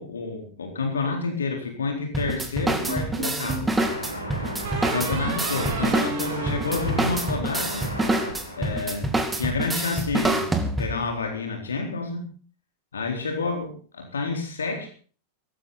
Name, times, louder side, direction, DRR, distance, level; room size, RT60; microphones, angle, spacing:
voice 1, 0.0-3.7 4.9-7.9 8.6-9.1 9.4-12.3 12.9-14.9, left 4 dB, 70° left, 3 dB, 4.2 m, -29 dB
sound 1, 2.1-11.1, right 2 dB, 10° right, 2.5 m, -27 dB
sound 2, 2.8-3.7 4.6-8.0, right 3 dB, 45° right, 6.8 m, -33 dB
sound 3, 3.8-9.3, equal, 85° left, 4.7 m, -35 dB
18.0 x 15.5 x 4.1 m, 0.39 s
figure-of-eight pair, 90°, 0 cm